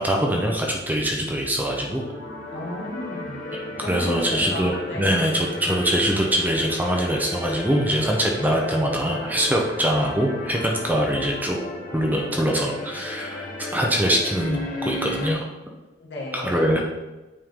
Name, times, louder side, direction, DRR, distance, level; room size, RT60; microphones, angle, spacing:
voice 1, 0.0-2.0 3.9-11.6 11.9-15.5 16.3-16.8, equal, 10° right, -1 dB, 0.7 m, -23 dB
sound 1, 1.6-15.3, left 2 dB, 45° left, 1.2 m, -35 dB
voice 2, 2.5-3.5 3.8-5.3 16.0-16.8, left 1 dB, 65° left, -3 dB, 1.7 m, -33 dB
8.5 x 3.7 x 3.6 m, 1.1 s
head